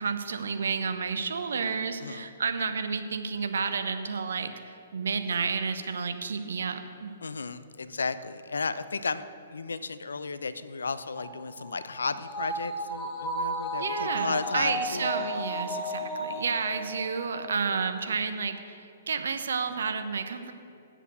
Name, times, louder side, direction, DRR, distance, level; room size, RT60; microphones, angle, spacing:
voice 1, 0.0-7.1 13.8-20.5, right 5 dB, 70° right, 8 dB, 0.9 m, -31 dB
voice 2, 7.2-9.2 9.5-15.1, left 4 dB, 80° left, 13 dB, 0.5 m, -34 dB
sound 1, 11.2-17.8 18.2-18.3, right 1 dB, 10° left, 2.0 m, -34 dB
8.2 x 7.3 x 8.1 m, 2.6 s
figure-of-eight pair, 120°, 0 cm